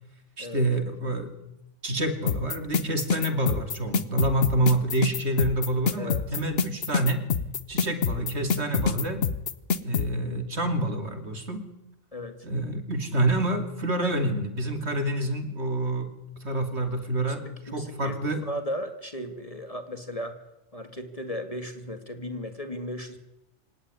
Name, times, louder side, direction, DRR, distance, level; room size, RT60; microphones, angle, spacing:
voice 1, 0.4-1.4 1.8-7.3 7.7-9.2 9.8-11.7 12.4-16.1 16.4-18.5, right 1 dB, 65° right, 7 dB, 3.0 m, -27 dB
sound 1, 2.3-10.1, left 5 dB, 55° left, 1.3 m, -26 dB
voice 2, 6.0-6.4 12.1-12.4 17.2-17.3 17.7-20.4 20.7-23.2, equal, 30° left, 7 dB, 2.4 m, -36 dB
26.0 x 18.0 x 9.7 m, 0.92 s
omnidirectional pair, 1.2 m